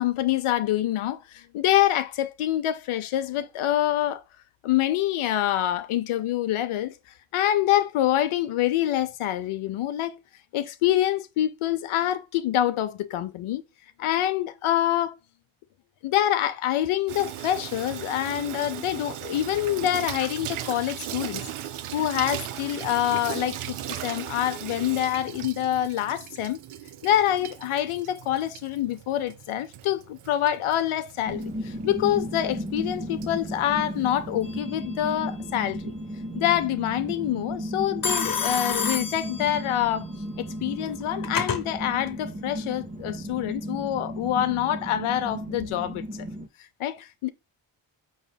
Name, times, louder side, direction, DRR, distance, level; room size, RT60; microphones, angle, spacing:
voice 1, 0.0-4.2 4.6-6.9 7.3-10.2 10.5-13.6 14.0-15.2 16.0-21.5 21.9-26.6 27.0-35.9 36.3-40.1 40.4-46.1 46.8-47.3, left 12 dB, 85° left, 0.5 m, -26 dB
Water tap faucet / Sink (filling or washing), 17.1-34.6, right 11 dB, 90° right, 0.6 m, -38 dB
sound 1, 31.3-46.5, equal, 20° right, 0.4 m, -35 dB
Telephone, 34.4-34.9 38.0-39.9 40.9-41.6, left 6 dB, 45° left, 0.9 m, -29 dB
5.2 x 3.4 x 2.2 m
wide cardioid pair, 120°, 49 cm